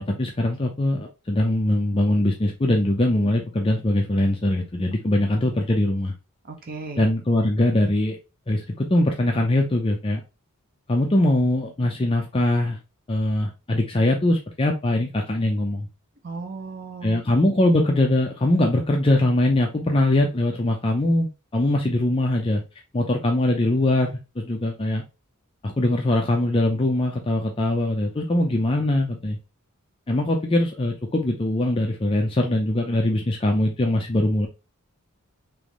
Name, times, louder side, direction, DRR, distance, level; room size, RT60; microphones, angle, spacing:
voice 1, 0.0-6.1 7.0-8.2 8.5-10.2 10.9-12.8 13.1-15.9 17.0-22.6 22.9-24.1 24.4-25.0 25.6-29.4 30.1-34.5, left 1 dB, 25° left, 1 dB, 0.5 m, -22 dB
voice 2, 6.4-7.1 16.2-17.2, right 3 dB, 45° right, 4 dB, 0.6 m, -35 dB
3.4 x 3.0 x 3.6 m, 0.28 s
head